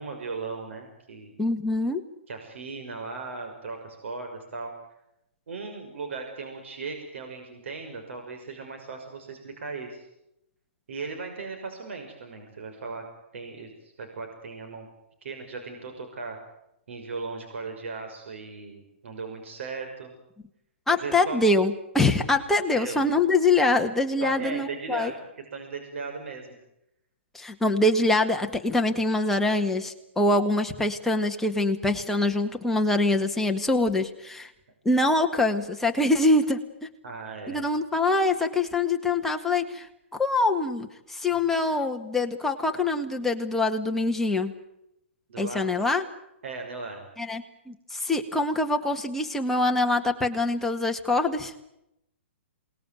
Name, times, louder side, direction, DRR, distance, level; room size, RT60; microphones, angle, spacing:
voice 1, 0.0-1.3 2.3-4.7 5.5-10.0 10.9-13.0 13.3-14.9 15.2-16.4 16.9-20.1 20.9-21.4 22.7-23.0 24.2-26.6 37.0-37.6 45.3-45.7 46.4-47.0, right 4 dB, 70° right, 4 dB, 6.0 m, -37 dB
voice 2, 1.4-2.0 20.9-25.1 27.3-34.5 34.9-36.6 37.5-39.9 40.1-44.5 45.4-46.0 47.2-51.5, left 2 dB, 5° left, 3 dB, 1.8 m, -24 dB
27.5 x 20.0 x 9.4 m, 0.83 s
hypercardioid pair, 145°, 7 cm